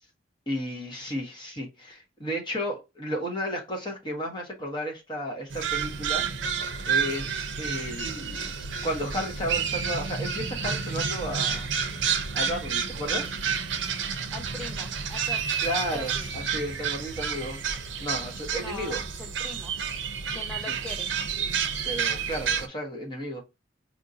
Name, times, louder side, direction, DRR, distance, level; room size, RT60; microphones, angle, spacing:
voice 1, 0.5-6.2 6.9-8.5 8.8-11.7 12.3-13.4 15.6-17.6 18.0-19.0 20.7-20.8 21.8-23.4, equal, 25° left, 1.2 m, -33 dB
sound 1, 5.5-22.7, right 6 dB, 80° right, 0.6 m, -30 dB
voice 2, 14.3-15.5 15.9-16.3 18.6-19.7 20.3-21.1, left 1 dB, 5° left, 0.4 m, -41 dB
4.5 x 2.6 x 2.7 m
head